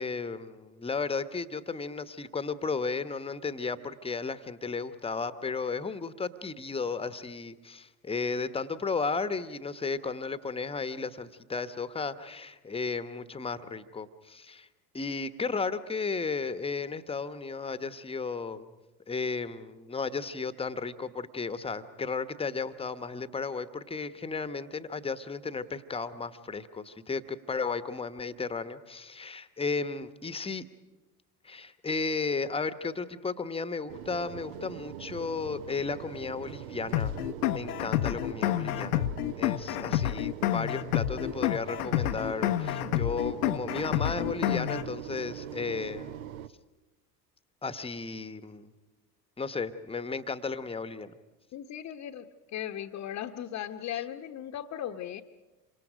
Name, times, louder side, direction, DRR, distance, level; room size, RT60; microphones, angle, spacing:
voice 1, 0.0-14.7 14.9-18.7 19.1-30.7 31.4-37.2 37.5-39.1 39.4-46.1 47.6-48.7 49.4-51.1 53.9-54.0, left 4 dB, 10° left, 13 dB, 1.1 m, -34 dB
sound 1, 33.9-46.5, right 10 dB, 55° right, 1.0 m, -42 dB
sound 2, 36.9-44.9, left 13 dB, 65° left, 0.9 m, -29 dB
voice 2, 51.5-55.2, left 10 dB, 35° left, 3 dB, 1.1 m, -37 dB
27.5 x 25.5 x 5.1 m, 1.1 s
figure-of-eight pair, 75°, 50 cm